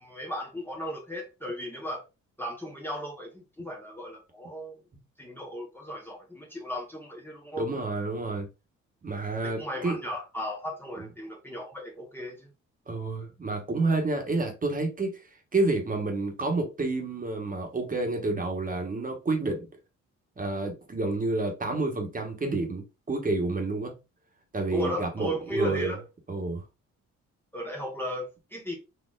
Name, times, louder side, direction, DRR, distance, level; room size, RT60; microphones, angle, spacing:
voice 1, 0.0-2.0 2.4-4.8 5.2-7.7 9.4-12.5 24.7-26.0 27.5-28.7, equal, 5° left, 0.8 m, -35 dB
voice 2, 7.6-8.5 9.0-9.9 11.0-11.1 12.9-15.2 15.5-19.7 20.4-23.9 24.5-25.9 26.3-26.6, right 2 dB, 25° right, 1.2 m, -29 dB
4.3 x 2.8 x 2.4 m
cardioid pair, 90°, 30 cm